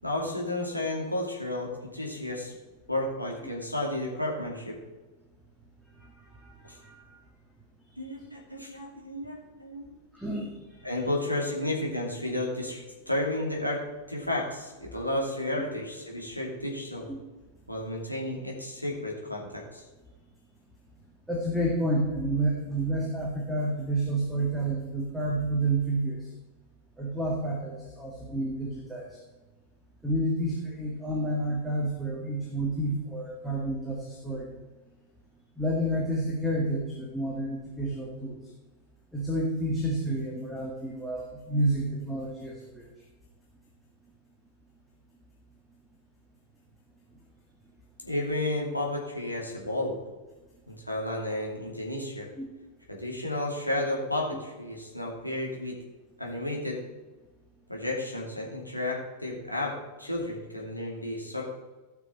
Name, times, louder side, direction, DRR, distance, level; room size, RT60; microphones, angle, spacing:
voice 1, 0.0-2.6 2.9-4.8 6.6-6.8 8.0-9.9 10.8-13.8 14.1-17.1 17.7-19.8 48.0-50.0 50.7-52.3 52.9-55.8 56.2-56.8 57.7-61.4, left 1 dB, 90° left, -3 dB, 2.5 m, -32 dB
voice 2, 6.4-7.0 10.1-10.5 10.8-10.9 17.1-17.2 21.3-26.2 27.0-29.2 30.0-34.5 35.6-38.4 39.1-42.8 52.4-52.5, right 1 dB, ahead, -2 dB, 2.0 m, -30 dB
16.5 x 6.1 x 4.3 m, 1.2 s
figure-of-eight pair, 90°, 0 cm